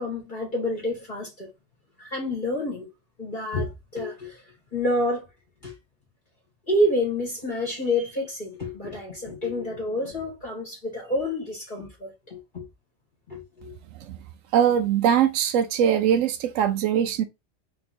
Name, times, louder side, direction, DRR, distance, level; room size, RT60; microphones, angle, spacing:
voice 1, 0.0-1.5 2.0-2.9 3.2-4.4 4.7-5.2 5.6-5.7 6.7-12.6 13.3-13.7, left 1 dB, 40° left, 2.1 m, -28 dB
voice 2, 14.5-17.2, right 9 dB, 85° right, 1.0 m, -21 dB
3.9 x 3.2 x 4.2 m
omnidirectional pair, 1.3 m